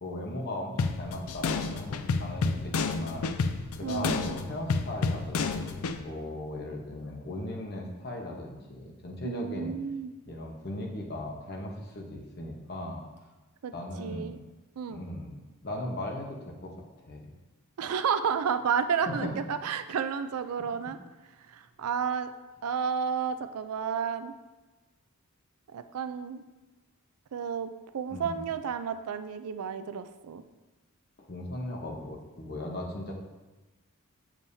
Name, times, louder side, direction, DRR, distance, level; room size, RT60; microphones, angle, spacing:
voice 1, 0.0-3.4 3.8-9.7 10.3-13.0 13.7-14.3 14.9-16.7 17.1-17.3 19.1-19.3 28.1-28.4 31.2-33.1, left 1 dB, 45° left, 0 dB, 1.0 m, -38 dB
sound 1, 0.8-6.0, left 4 dB, 70° left, 0.4 m, -30 dB
voice 2, 3.8-4.4 9.2-10.1 13.6-13.7 14.0-14.4 14.8-15.0 17.8-21.0 21.5-22.3 22.6-24.3 25.7-26.4 27.3-30.4, right 6 dB, 80° right, 11 dB, 0.4 m, -31 dB
7.3 x 6.9 x 2.7 m, 1.2 s
head